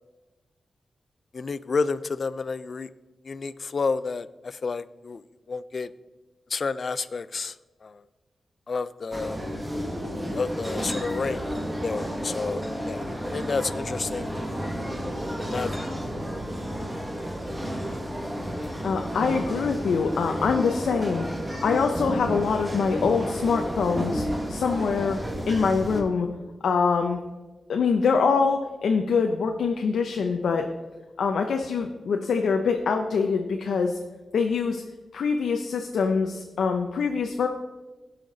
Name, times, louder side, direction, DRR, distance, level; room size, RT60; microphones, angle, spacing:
voice 1, 1.3-2.9 3.2-5.2 5.5-5.9 6.5-7.6 7.8-8.0 8.7-9.4 10.3-11.5 11.8-13.1 13.3-14.3 14.9-15.0 15.3-15.9, left 4 dB, 50° left, 16 dB, 0.3 m, -30 dB
sound 1, 9.1-26.0, equal, 10° right, 1.3 m, -31 dB
voice 2, 18.8-25.2 25.5-26.3 26.6-27.2 27.7-30.7 31.2-34.0 34.3-34.8 35.1-37.5, left 5 dB, 85° left, 4 dB, 0.7 m, -24 dB
16.5 x 5.8 x 3.9 m, 1.2 s
wide cardioid pair, 105°, 0 cm